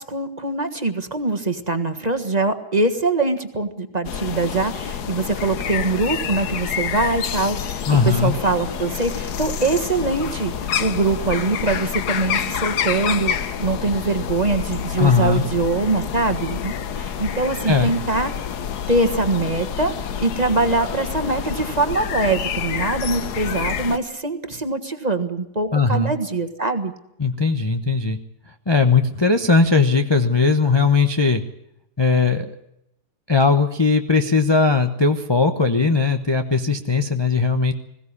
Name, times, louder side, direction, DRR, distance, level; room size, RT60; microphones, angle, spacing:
voice 1, 0.0-18.3 18.9-19.9 20.2-26.9, right 3 dB, 25° right, 8 dB, 1.7 m, -23 dB
sound 1, 4.0-24.0, left 8 dB, 80° left, 1.6 m, -28 dB
voice 2, 7.9-8.3 15.0-15.4 17.6-17.9 25.7-26.1 27.2-28.2 28.7-31.4 32.0-32.5 33.3-37.7, left 4 dB, 20° left, 6 dB, 0.9 m, -18 dB
21.0 x 16.5 x 9.8 m, 0.83 s
omnidirectional pair, 1.7 m